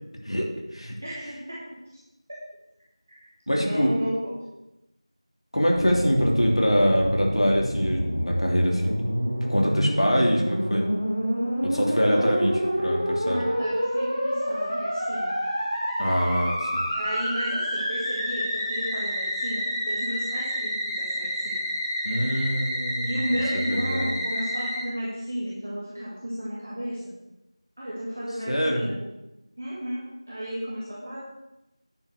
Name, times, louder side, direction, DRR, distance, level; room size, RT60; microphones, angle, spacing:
voice 1, 0.2-0.9 3.5-3.9 5.5-8.9 9.5-10.9 11.6-12.5 12.8-13.4 16.0-16.9 22.0-23.2 23.5-24.1 28.5-28.8, equal, 70° left, -1 dB, 3.0 m, -24 dB
voice 2, 1.0-1.6 3.5-4.4 12.1-12.5 13.2-15.4 16.9-21.7 23.0-27.1 27.8-28.9 29.6-31.2, equal, 25° right, -7 dB, 1.6 m, -33 dB
Musical instrument, 5.7-24.8, equal, 20° left, 2.8 m, -28 dB
9.7 x 7.0 x 6.5 m, 0.94 s
figure-of-eight pair, 175°, 3 cm